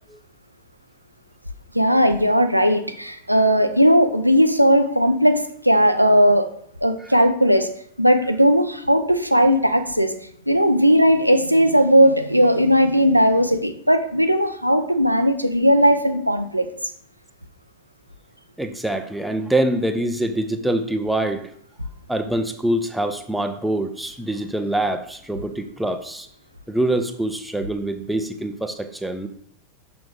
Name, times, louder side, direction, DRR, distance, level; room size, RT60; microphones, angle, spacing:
voice 1, 1.7-6.5 6.8-7.7 8.0-10.1 10.5-16.7, equal, 90° right, 7 dB, 0.5 m, -17 dB
voice 2, 18.6-21.5 22.1-26.3 26.7-29.3, right 1 dB, 5° right, 6 dB, 0.6 m, -25 dB
6.0 x 5.8 x 3.7 m, 0.64 s
figure-of-eight pair, 90°, 0 cm